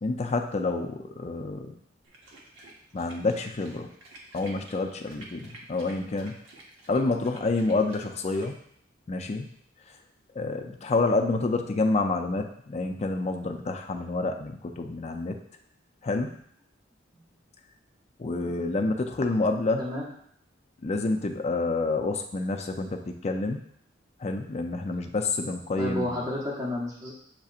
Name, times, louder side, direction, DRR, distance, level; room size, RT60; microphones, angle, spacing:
voice 1, 0.0-1.8 2.9-3.9 4.3-6.4 6.9-8.6 9.1-9.5 10.3-15.4 16.0-16.4 18.2-19.9 20.8-23.6 24.2-26.2, left 3 dB, 35° left, 5 dB, 0.4 m, -28 dB
sound 1, 2.0-8.5, right 2 dB, 80° right, 0.9 m, -50 dB
voice 2, 19.8-20.1 25.8-27.1, left 1 dB, 20° right, -5 dB, 0.8 m, -31 dB
7.3 x 2.8 x 2.4 m, 0.66 s
head